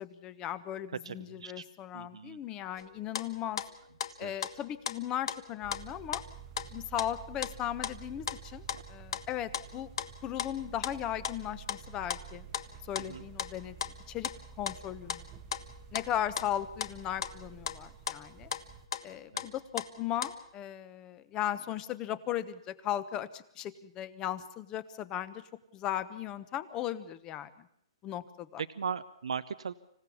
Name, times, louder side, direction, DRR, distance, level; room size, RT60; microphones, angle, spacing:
voice 1, 0.0-3.6 4.2-6.2 6.7-9.9 10.2-12.5 12.8-13.7 14.1-14.3 14.6-15.3 15.9-18.5 19.0-25.4 25.7-27.7 28.0-28.6, left 11 dB, 20° left, 15 dB, 1.1 m, -37 dB
voice 2, 1.0-1.7 1.9-2.4 4.2-4.3 8.7-8.8 13.0-13.2 19.3-19.5 28.6-29.7, right 6 dB, 85° right, 13 dB, 0.8 m, -38 dB
sound 1, 2.8-20.4, left 8 dB, 60° left, 1.3 m, -38 dB
sound 2, 5.6-18.9, right 8 dB, 25° right, 1.2 m, -50 dB
26.0 x 16.0 x 7.1 m, 0.70 s
hypercardioid pair, 150°, 3 cm